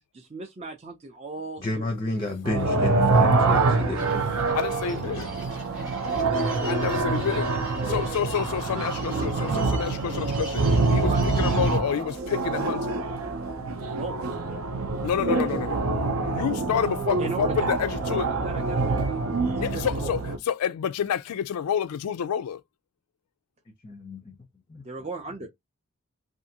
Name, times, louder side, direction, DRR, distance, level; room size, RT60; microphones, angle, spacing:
voice 1, 0.1-1.9 6.0-7.4 7.8-10.0 11.0-11.3 13.9-14.2 17.2-20.2 24.8-25.5, right 3 dB, 30° right, 0.4 m, -39 dB
voice 2, 1.6-4.1 16.2-16.4 23.8-24.3 24.7-24.8, left 2 dB, 25° left, 0.5 m, -31 dB
sound 1, 2.4-20.4, right 3 dB, 70° right, 0.6 m, -25 dB
sound 2, 4.0-11.8, equal, 5° right, 0.9 m, -44 dB
voice 3, 4.5-5.3 6.6-7.5 7.9-10.6 10.9-13.0 15.0-15.8 16.2-18.3 19.6-20.2 20.5-22.6, left 8 dB, 90° left, 0.3 m, -28 dB
2.5 x 2.5 x 2.7 m
head